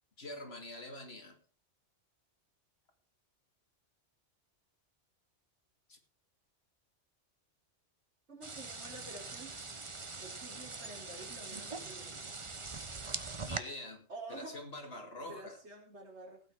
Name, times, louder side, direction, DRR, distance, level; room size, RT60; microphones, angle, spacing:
voice 1, 0.2-1.4 5.9-6.0 13.3-15.6, left 1 dB, 55° left, 2.7 m, -46 dB
voice 2, 8.3-9.6 10.2-12.4 14.1-14.6 15.2-16.4, right 2 dB, 65° right, 4.5 m, -49 dB
sound 1, 8.4-13.6, right 3 dB, 25° right, 1.0 m, -42 dB
17.0 x 8.9 x 4.7 m
omnidirectional pair, 1.2 m